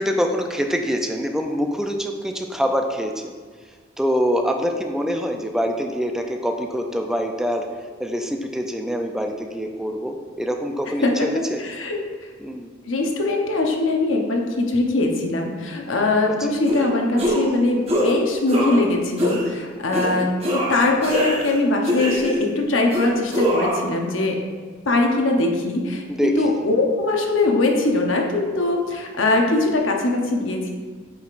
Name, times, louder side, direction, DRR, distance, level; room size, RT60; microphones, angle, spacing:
voice 1, 0.0-3.2 4.0-7.7 8.0-11.6 12.4-12.7 19.9-20.3 26.2-26.5, equal, 5° right, 4 dB, 0.4 m, -25 dB
voice 2, 11.0-12.3 12.8-24.4 24.8-30.7, left 2 dB, 80° left, 1 dB, 0.9 m, -21 dB
sound 1, 16.7-16.8 17.2-17.5 17.9-18.1 18.5-18.9 19.2-19.5 19.9-20.1 20.4-21.5 21.8-22.5 22.9-23.9, equal, 30° right, 1.2 m, -23 dB
8.0 x 5.0 x 2.5 m, 1.5 s
head